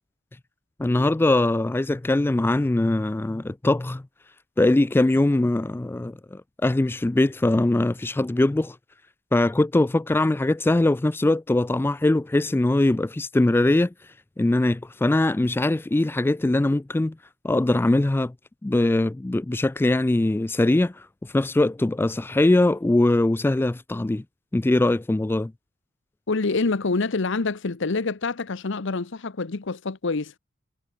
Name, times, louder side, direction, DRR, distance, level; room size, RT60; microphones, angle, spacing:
voice 1, 0.8-4.0 4.6-8.8 9.3-13.9 14.4-17.1 17.4-18.3 18.6-21.1 21.3-24.2 24.5-25.5, left 2 dB, 10° left, 0.3 m, -21 dB
voice 2, 26.3-30.3, left 3 dB, 65° left, 0.9 m, -26 dB
head